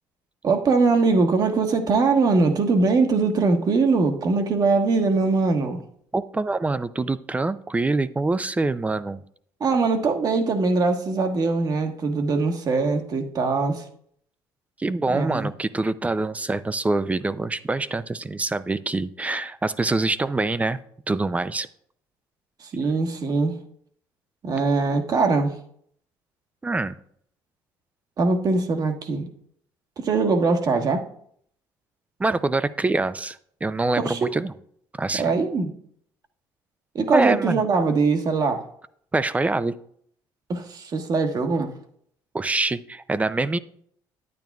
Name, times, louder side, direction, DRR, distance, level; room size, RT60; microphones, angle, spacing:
voice 1, 0.4-5.8 9.6-13.8 15.1-15.5 22.6-23.6 24.4-25.5 28.2-29.3 30.0-31.1 34.0-34.3 35.2-35.7 36.9-38.6 40.5-41.7, right 4 dB, 45° right, 5 dB, 1.4 m, -22 dB
voice 2, 6.1-9.2 14.8-20.8 21.1-21.7 26.6-27.0 32.2-34.5 35.0-35.3 37.1-37.6 39.1-39.8 42.3-43.6, right 3 dB, 15° right, 15 dB, 0.5 m, -25 dB
10.5 x 9.0 x 2.4 m, 0.65 s
supercardioid pair, 85°, 9 cm